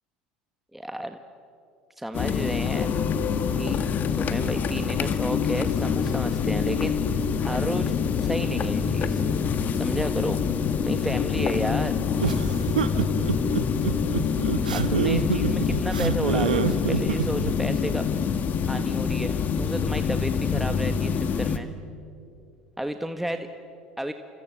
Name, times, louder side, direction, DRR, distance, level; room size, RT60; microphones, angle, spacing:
voice 1, 0.7-1.2 2.0-2.9 3.6-3.8 4.1-7.9 8.2-9.2 9.8-10.4 10.8-12.0 14.7-18.2 18.6-21.7 22.8-23.5 24.0-24.1, right 1 dB, 5° right, 7 dB, 1.5 m, -32 dB
sound 1, 2.1-21.6, left 6 dB, 45° left, 1.9 m, -26 dB
sound 2, 12.2-17.5, right 7 dB, 90° right, 1.2 m, -26 dB
28.0 x 27.0 x 7.6 m, 2.6 s
hypercardioid pair, 75°, 4 cm